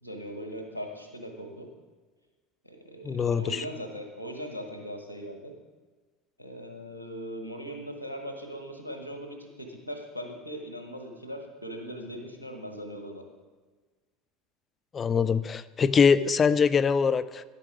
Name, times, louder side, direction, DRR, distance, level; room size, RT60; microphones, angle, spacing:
voice 1, 0.0-1.7 2.6-5.5 6.4-13.2, equal, 85° right, 4 dB, 1.1 m, -39 dB
voice 2, 3.0-3.6 14.9-17.4, left 6 dB, 25° left, 13 dB, 0.3 m, -23 dB
10.5 x 8.1 x 3.6 m, 1.4 s
figure-of-eight pair, 70°, 0 cm